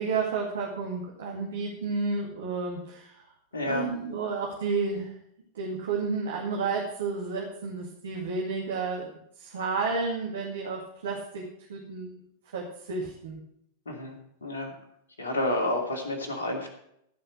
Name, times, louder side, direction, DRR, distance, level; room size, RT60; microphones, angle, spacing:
voice 1, 0.0-3.2 3.6-5.1 5.5-9.1 9.4-11.4 11.7-12.2 12.5-13.4, right 4 dB, 65° right, -1 dB, 2.2 m, -31 dB
voice 2, 3.5-3.9 13.9-14.1 14.4-14.7 15.2-16.7, left 1 dB, 70° left, 3 dB, 2.9 m, -29 dB
16.0 x 5.6 x 7.6 m, 0.73 s
figure-of-eight pair, 90°, 0 cm